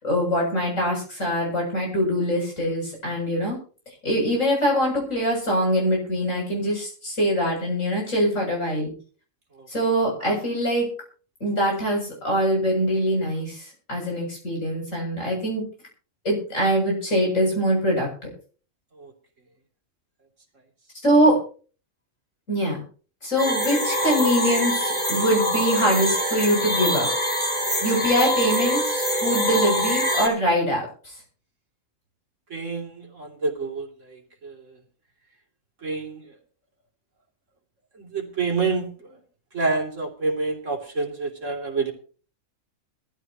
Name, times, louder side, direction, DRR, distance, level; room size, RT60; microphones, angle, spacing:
voice 1, 0.0-3.6 4.0-8.9 9.7-10.9 11.4-15.6 16.2-18.1 21.0-21.4 22.5-22.8 23.2-27.1 27.4-31.1, equal, 70° left, -2 dB, 8.0 m, -23 dB
sound 1, 23.4-30.3, equal, 5° left, 4.5 m, -24 dB
voice 2, 32.5-34.7 35.8-36.2 37.9-39.2 39.5-41.9, right 4 dB, 65° right, 1 dB, 3.3 m, -28 dB
21.5 x 14.0 x 3.0 m, 0.40 s
omnidirectional pair, 1.4 m